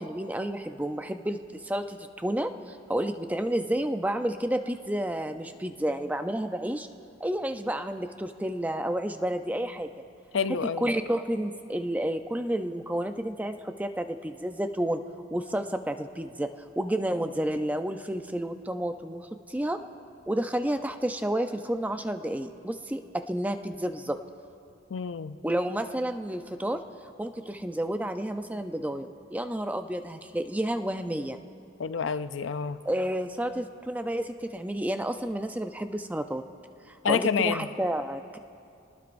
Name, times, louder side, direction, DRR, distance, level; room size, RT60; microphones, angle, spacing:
voice 1, 0.0-6.9 7.2-9.9 10.8-15.0 15.3-19.8 20.3-24.2 25.4-31.4 32.9-36.4 36.9-38.4, right 1 dB, 10° right, 8 dB, 0.5 m, -30 dB
voice 2, 10.3-10.9 24.9-25.4 31.8-32.8 37.0-37.7, left 6 dB, 85° left, 12 dB, 0.5 m, -28 dB
27.5 x 19.5 x 2.6 m, 2.6 s
head